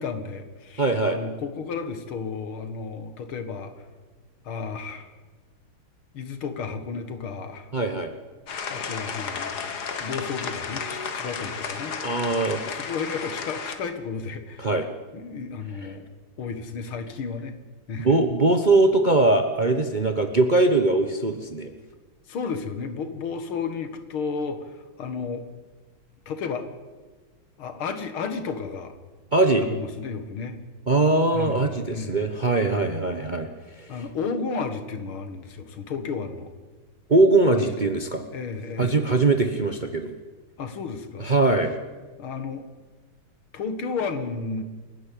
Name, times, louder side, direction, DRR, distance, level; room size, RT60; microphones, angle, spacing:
voice 1, 0.0-3.7 4.4-5.1 6.1-7.7 8.7-9.6 10.0-14.7 15.1-16.0 16.4-17.6 17.9-18.2 22.3-25.4 26.3-26.7 27.6-28.9 29.6-30.6 31.3-32.3 32.7-33.1 33.9-36.5 37.5-37.9 38.3-39.0 40.6-41.3 42.2-42.7 43.5-44.6, left 5 dB, 80° left, 9 dB, 2.5 m, -33 dB
voice 2, 0.8-1.2 7.7-8.1 12.0-12.6 14.6-14.8 18.0-21.7 29.3-29.7 30.9-33.5 33.8-33.9 37.1-38.2 38.8-40.1 41.2-41.8, right 2 dB, 35° right, 7 dB, 0.8 m, -21 dB
sound 1, 8.5-13.8, left 5 dB, 55° left, 1.9 m, -33 dB
28.5 x 11.0 x 8.5 m, 1.3 s
omnidirectional pair, 2.3 m